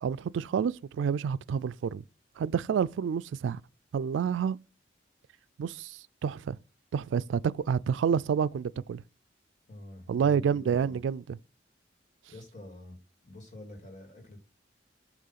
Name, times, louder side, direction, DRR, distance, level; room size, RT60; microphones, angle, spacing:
voice 1, 0.0-2.0 2.4-3.6 3.9-4.6 5.6-6.6 6.9-9.0 10.1-11.4, right 7 dB, 90° right, 0.3 m, -29 dB
voice 2, 9.7-11.0 12.3-14.4, left 1 dB, 40° left, 2.1 m, -47 dB
7.4 x 3.0 x 5.7 m
head